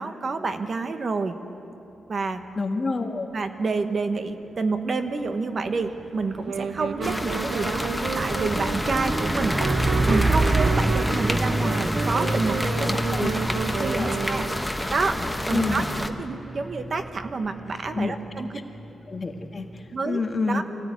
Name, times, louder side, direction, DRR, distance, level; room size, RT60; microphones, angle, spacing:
voice 1, 0.0-1.4 2.1-2.4 3.3-7.9 8.1-9.6 10.1-13.5 13.8-14.5 14.9-18.5 19.9-20.2 20.5-20.6, right 4 dB, 40° right, 8 dB, 1.3 m, -28 dB
voice 2, 2.6-3.3 12.9-13.3 13.9-14.1 15.5-15.8 17.9-18.1 19.1-20.6, left 3 dB, 30° left, 4 dB, 1.6 m, -28 dB
Truck, 5.7-20.0, right 2 dB, 10° right, 0.5 m, -29 dB
sound 1, 6.4-14.9, right 7 dB, 75° right, 0.9 m, -32 dB
sound 2, 7.0-16.1, left 1 dB, 5° left, 1.1 m, -29 dB
24.0 x 16.5 x 9.6 m, 2.9 s
wide cardioid pair, 130°, 0 cm